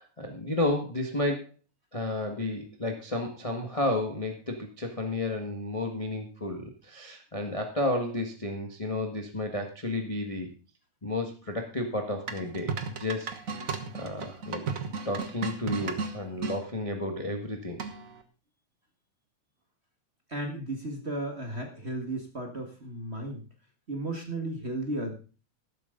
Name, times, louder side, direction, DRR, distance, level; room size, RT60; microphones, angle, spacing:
voice 1, 0.0-1.5 1.9-10.5 11.0-14.6 15.0-17.8, left 1 dB, 20° left, 3 dB, 1.0 m, -32 dB
sound 1, 12.3-16.6 17.8-18.2, right 5 dB, 55° right, 0.9 m, -35 dB
voice 2, 20.3-23.4 23.9-25.2, right 1 dB, 25° right, 3 dB, 1.6 m, -34 dB
13.5 x 12.0 x 3.9 m, 0.34 s
omnidirectional pair, 3.3 m